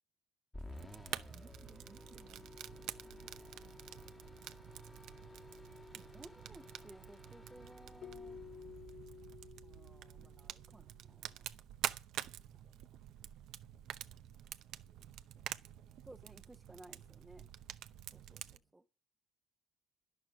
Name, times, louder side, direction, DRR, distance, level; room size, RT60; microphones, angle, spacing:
sound 1, 0.5-9.9, left 2 dB, 10° left, 1.3 m, -55 dB
Fire, 0.6-18.6, right 12 dB, 70° right, 0.7 m, -48 dB
voice 1, 1.3-4.3 5.8-6.1 12.0-16.1 18.3-18.7, right 6 dB, 45° right, 1.1 m, -67 dB
voice 2, 5.9-8.7 9.6-11.5 12.5-12.6 16.0-17.5 18.1-18.4 18.7-18.8, right 2 dB, 10° right, 0.8 m, -58 dB
Keyboard (musical), 8.0-10.8, left 7 dB, 55° left, 0.9 m, -53 dB
11.5 x 11.0 x 6.2 m
cardioid pair, 95°, 0 cm